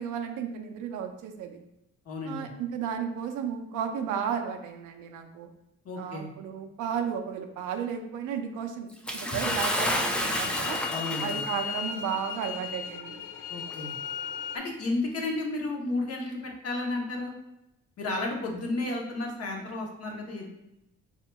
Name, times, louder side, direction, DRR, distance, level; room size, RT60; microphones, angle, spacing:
voice 1, 0.0-1.6 2.2-5.5 6.0-10.8 11.2-13.2, right 7 dB, 85° right, 5 dB, 0.5 m, -33 dB
voice 2, 2.1-2.5 5.8-6.3 10.9-11.4 13.5-14.0 14.5-17.3 18.0-20.5, left 2 dB, 55° left, 0 dB, 0.9 m, -32 dB
Bathtub (filling or washing) / Splash splatter, 9.1-11.7 12.6-12.7 13.7-13.8, equal, 5° left, 0.4 m, -30 dB
sound 1, 9.4-14.6, left 8 dB, 80° left, 0.5 m, -36 dB
4.4 x 2.7 x 2.2 m, 0.88 s
cardioid pair, 90°, 30 cm